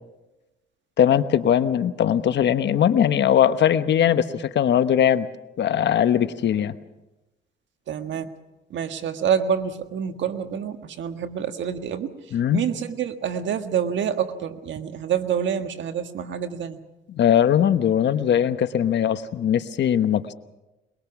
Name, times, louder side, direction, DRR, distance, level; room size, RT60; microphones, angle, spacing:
voice 1, 1.0-5.3 5.6-6.7 12.3-12.6 17.1-20.3, left 9 dB, 65° left, 11 dB, 1.1 m, -20 dB
voice 2, 7.9-8.3 8.7-12.1 12.5-16.8, right 8 dB, 70° right, 7 dB, 1.6 m, -27 dB
22.5 x 22.0 x 6.0 m, 1.0 s
cardioid pair, 90°, 20 cm